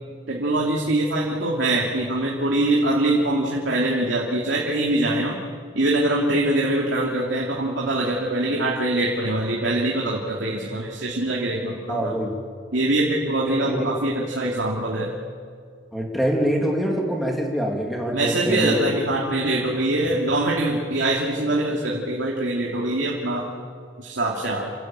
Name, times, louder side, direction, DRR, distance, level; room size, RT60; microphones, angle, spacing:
voice 1, 0.3-5.4 5.7-12.2 12.7-15.1 18.1-23.5 24.0-24.7, right 1 dB, 75° right, -2 dB, 2.7 m, -23 dB
voice 2, 11.9-12.3 13.5-13.9 15.9-18.9, equal, ahead, -1 dB, 2.9 m, -25 dB
28.5 x 14.0 x 8.8 m, 2.1 s
head